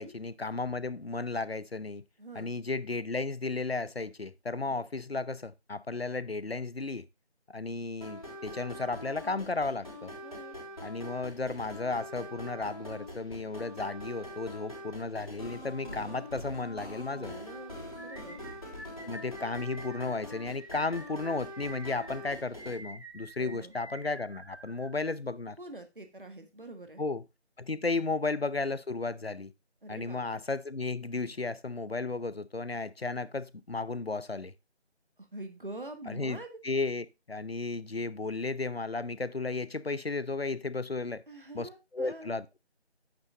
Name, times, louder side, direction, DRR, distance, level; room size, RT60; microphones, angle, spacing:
voice 1, 0.0-2.0 2.3-7.1 7.5-10.1 10.8-17.3 19.0-25.6 27.0-27.2 27.6-29.5 29.9-34.5 36.1-36.4 36.6-41.2 41.5-42.4, left 3 dB, 60° left, 0.8 m, -34 dB
voice 2, 2.2-2.5 4.7-4.8 10.2-10.6 15.8-16.3 17.1-18.4 23.4-23.7 25.6-27.0 29.8-30.4 35.2-36.6 41.3-42.3, right 1 dB, 50° right, 1.7 m, -45 dB
sound 1, 8.0-22.8, left 1 dB, 30° left, 3.6 m, -44 dB
sound 2, 18.0-25.3, right 1 dB, 70° right, 1.8 m, -49 dB
9.4 x 8.9 x 2.4 m
figure-of-eight pair, 175°, 34 cm